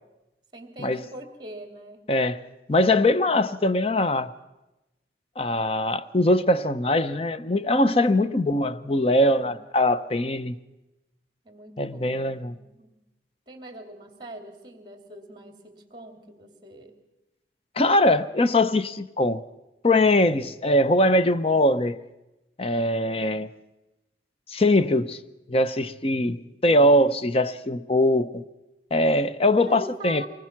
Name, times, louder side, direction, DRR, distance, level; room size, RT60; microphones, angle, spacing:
voice 1, 0.5-2.1 8.2-8.6 9.2-9.6 11.4-13.0 13.5-17.0 18.7-18.8 26.6-27.0 29.5-30.3, right 1 dB, 25° right, 2.7 m, -42 dB
voice 2, 2.1-2.4 2.7-4.3 5.4-10.6 11.8-12.5 17.8-19.4 19.8-22.0 22.6-23.5 24.5-25.2 25.5-28.4 28.9-30.2, left 1 dB, 35° left, 0.7 m, -22 dB
24.5 x 20.0 x 6.0 m
head